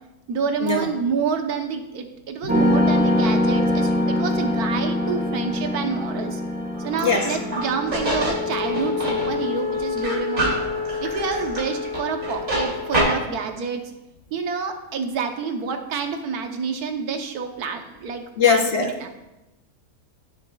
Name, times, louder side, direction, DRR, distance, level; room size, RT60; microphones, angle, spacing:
voice 1, 0.3-6.4 6.8-10.5 11.0-13.8 14.3-19.1, right 5 dB, 85° right, 6 dB, 1.4 m, -28 dB
sound 1, 2.5-9.5, left 1 dB, 10° right, 0.5 m, -24 dB
sound 2, 6.7-13.0, left 1 dB, 60° right, 3.1 m, -26 dB
voice 2, 18.4-18.9, left 5 dB, 60° left, 5 dB, 0.8 m, -20 dB
15.5 x 6.8 x 2.3 m, 1.0 s
omnidirectional pair, 1.6 m